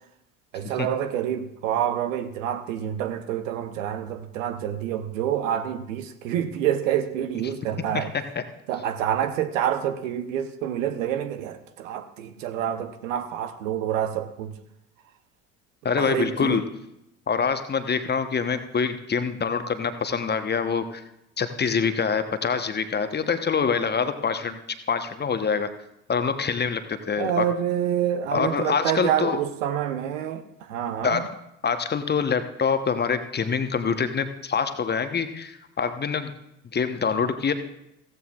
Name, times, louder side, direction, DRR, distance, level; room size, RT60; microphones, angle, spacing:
voice 1, 0.5-8.1 8.7-14.5 16.0-16.6 27.2-30.4 30.7-31.3, right 10 dB, 70° right, 1.0 m, -27 dB
voice 2, 7.9-8.4 15.8-16.6 17.3-21.0 21.4-24.6 24.9-25.7 26.1-27.4 28.3-29.4 31.0-31.3 31.6-36.3 36.7-37.5, left 6 dB, 25° left, 1.0 m, -25 dB
15.5 x 14.5 x 2.4 m
figure-of-eight pair, 60°, 40 cm